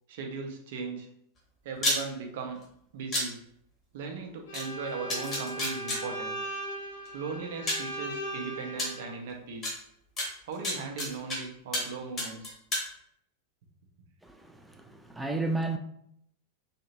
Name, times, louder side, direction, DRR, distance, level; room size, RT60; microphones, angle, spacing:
voice 1, 0.1-1.1 1.6-2.6 2.9-3.4 3.9-6.4 7.1-9.8 10.5-12.6, right 4 dB, 55° right, 0.7 m, -38 dB
sound 1, 1.7-2.0 3.1-3.2 4.5-4.6 5.1-6.0 7.1-7.2 7.7-7.9 8.8-8.9 9.6-9.7 10.2-11.4 11.7-11.9 12.2-12.8, left 1 dB, 25° left, 1.3 m, -29 dB
Bowed string instrument, 4.5-9.2, equal, 60° left, 0.9 m, -38 dB
voice 2, 14.2-15.8, right 2 dB, 5° right, 0.4 m, -33 dB
3.3 x 2.8 x 2.9 m
figure-of-eight pair, 90°, 0 cm